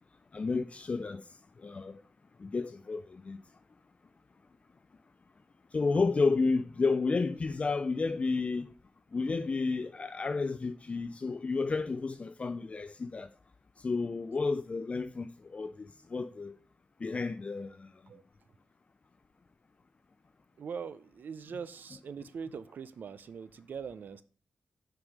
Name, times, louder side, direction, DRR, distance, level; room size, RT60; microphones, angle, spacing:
voice 1, 0.3-1.2 1.6-2.0 2.4-3.4 5.7-8.6 9.1-13.3 13.8-16.6 17.0-17.9, left 4 dB, 40° left, 0.4 m, -31 dB
voice 2, 20.6-24.2, right 6 dB, 75° right, 0.5 m, -42 dB
6.2 x 4.8 x 5.1 m
cardioid pair, 60°, 3 cm